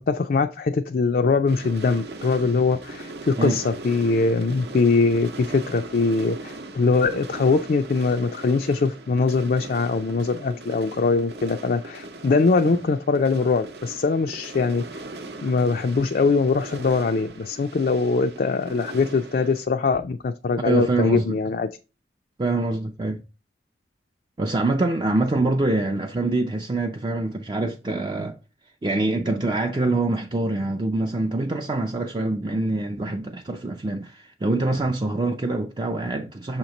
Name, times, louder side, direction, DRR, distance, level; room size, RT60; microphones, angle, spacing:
voice 1, 0.1-14.8 15.4-21.7, left 4 dB, 50° left, 0.4 m, -22 dB
sound 1, 1.5-19.6, right 2 dB, 65° right, 0.7 m, -39 dB
voice 2, 20.6-21.4 22.4-23.2 24.4-28.4 28.8-36.6, right 2 dB, 25° right, 0.4 m, -25 dB
6.3 x 3.0 x 5.1 m
head